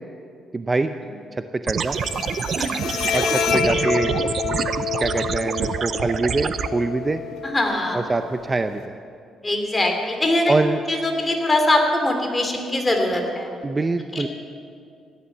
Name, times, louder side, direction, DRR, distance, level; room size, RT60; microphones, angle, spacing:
voice 1, 0.5-1.0 1.3-2.0 3.1-4.2 4.4-4.7 5.0-7.2 7.9-9.0 10.5-10.8 13.6-14.3, right 3 dB, 25° right, 9 dB, 0.6 m, -24 dB
sound 1, 1.7-6.7, right 7 dB, 55° right, 0.6 m, -27 dB
Bowed string instrument, 1.8-8.8, left 6 dB, 85° left, 1.3 m, -28 dB
voice 2, 7.4-8.0 9.4-10.5 10.9-13.5 14.1-14.3, left 1 dB, 20° left, 3 dB, 2.9 m, -22 dB
16.0 x 11.5 x 7.4 m, 2.4 s
cardioid pair, 90°, 0 cm